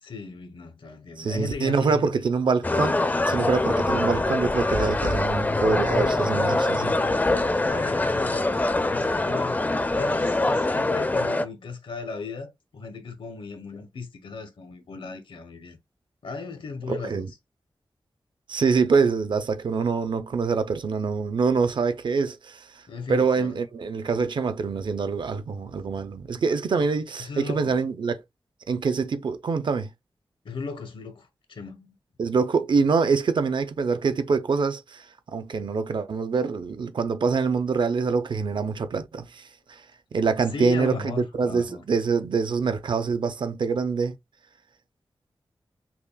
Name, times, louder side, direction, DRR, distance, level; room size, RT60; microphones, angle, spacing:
voice 1, 0.0-2.1 6.8-9.6 9.9-15.8 16.2-17.4 22.9-23.6 27.2-27.8 30.4-32.0 40.5-41.8, left 4 dB, 75° left, 0.9 m, -36 dB
voice 2, 1.2-3.0 3.3-7.0 16.9-17.3 18.5-22.6 23.1-28.1 28.7-29.9 32.2-35.1 35.3-39.8 40.1-44.1, right 5 dB, 60° right, 0.5 m, -25 dB
sound 1, 2.6-11.5, left 2 dB, 20° left, 0.4 m, -24 dB
5.7 x 2.2 x 2.2 m
wide cardioid pair, 110°, 9 cm